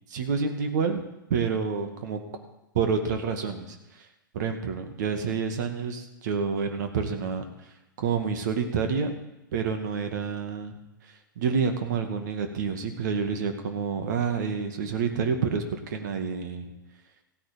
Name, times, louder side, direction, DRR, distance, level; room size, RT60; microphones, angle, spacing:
voice 1, 0.1-1.0 1.3-2.2 2.7-3.8 4.3-7.4 8.0-9.1 9.5-10.8 11.4-16.7, right 5 dB, 60° right, 6 dB, 2.1 m, -28 dB
16.0 x 8.9 x 5.2 m, 0.96 s
figure-of-eight pair, 105°, 11 cm